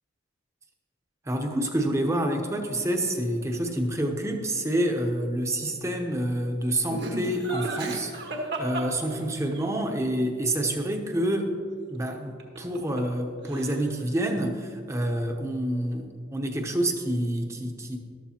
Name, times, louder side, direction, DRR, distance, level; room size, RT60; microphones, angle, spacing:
voice 1, 1.3-8.1 8.6-11.5 11.9-18.0, right 1 dB, 15° right, 3 dB, 0.9 m, -28 dB
Laughter, 6.9-9.6 12.4-13.2 13.5-14.0, right 2 dB, 60° right, 1.5 m, -34 dB
13.5 x 12.5 x 2.9 m, 2.2 s
head